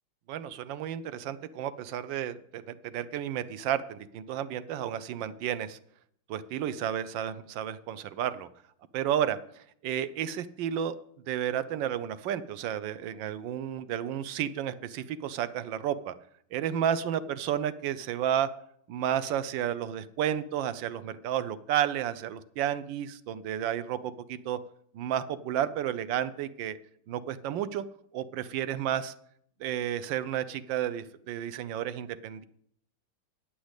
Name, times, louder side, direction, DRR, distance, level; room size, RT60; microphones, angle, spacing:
voice 1, 0.3-5.8 6.3-8.5 8.9-11.0 11.3-16.1 16.5-18.5 18.9-24.6 24.9-26.8 27.1-27.8 28.1-29.1 29.6-32.4, right 10 dB, 70° right, 15 dB, 1.2 m, -32 dB
9.8 x 6.2 x 8.0 m, 0.67 s
omnidirectional pair, 2.4 m